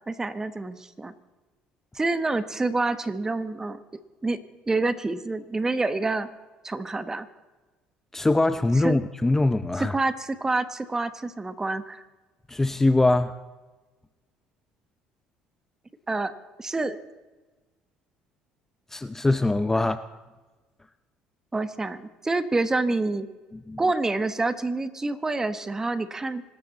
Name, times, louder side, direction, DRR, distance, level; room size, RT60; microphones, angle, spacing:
voice 1, 0.1-1.1 1.9-3.8 4.2-4.4 4.7-6.3 6.6-7.3 8.8-9.0 9.8-12.0 16.1-16.3 16.6-17.0 21.5-23.3 23.8-26.4, right 3 dB, 20° right, 11 dB, 1.3 m, -27 dB
voice 2, 8.1-10.0 12.5-13.3 18.9-20.0 23.7-23.8, left 2 dB, 15° left, 12 dB, 0.6 m, -22 dB
25.0 x 13.0 x 4.1 m, 1.2 s
supercardioid pair, 85°, 3 cm